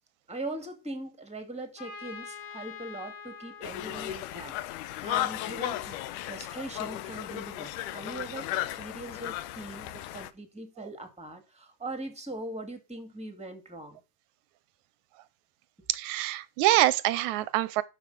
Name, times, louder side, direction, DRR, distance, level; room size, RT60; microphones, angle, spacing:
voice 1, 0.3-14.0, right 2 dB, 5° right, 1.3 m, -41 dB
Trumpet, 1.8-5.5, left 6 dB, 60° left, 3.2 m, -46 dB
Conversation, 3.6-10.3, left 14 dB, 80° left, 2.2 m, -35 dB
voice 2, 15.9-17.8, right 16 dB, 75° right, 1.9 m, -25 dB
10.5 x 6.5 x 5.3 m
omnidirectional pair, 3.7 m